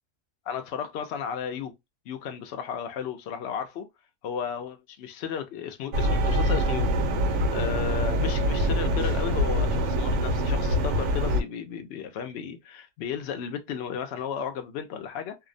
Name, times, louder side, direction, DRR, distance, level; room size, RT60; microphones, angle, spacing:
voice 1, 0.5-1.7 2.1-3.8 4.2-6.9 7.5-15.4, left 7 dB, 70° left, 0.6 m, -34 dB
sound 1, 5.9-11.4, equal, 85° right, 1.1 m, -24 dB
2.7 x 2.0 x 2.4 m
omnidirectional pair, 1.6 m